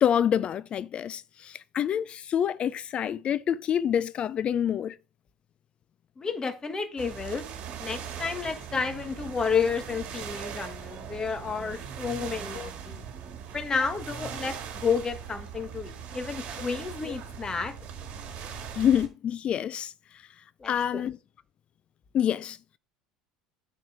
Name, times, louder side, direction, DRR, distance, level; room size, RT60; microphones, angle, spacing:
voice 1, 0.0-4.9 12.5-12.7 18.8-19.9 20.7-21.2 22.1-22.6, left 9 dB, 40° left, 0.4 m, -27 dB
voice 2, 6.2-7.5 7.8-13.0 13.5-17.7 20.6-21.1, left 5 dB, 25° left, 1.5 m, -31 dB
sound 1, 7.0-19.1, right 7 dB, 50° right, 1.8 m, -40 dB
9.3 x 4.6 x 4.8 m
hypercardioid pair, 75°, 3 cm